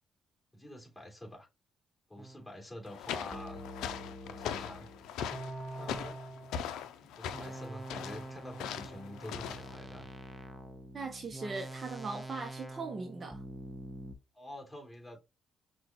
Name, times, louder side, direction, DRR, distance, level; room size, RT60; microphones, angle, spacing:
voice 1, 0.5-1.5 2.1-3.6 4.2-4.9 5.7-6.2 6.9-10.1 14.3-15.2, left 1 dB, 10° left, 2.8 m, -47 dB
sound 1, 2.2-2.5 3.3-6.7 7.3-14.1, right 1 dB, 5° right, 0.8 m, -45 dB
sound 2, 2.9-9.8, left 8 dB, 90° left, 0.5 m, -41 dB
voice 2, 10.9-13.4, right 3 dB, 35° right, 0.8 m, -39 dB
5.8 x 2.4 x 2.9 m
cardioid pair, 90°, 0 cm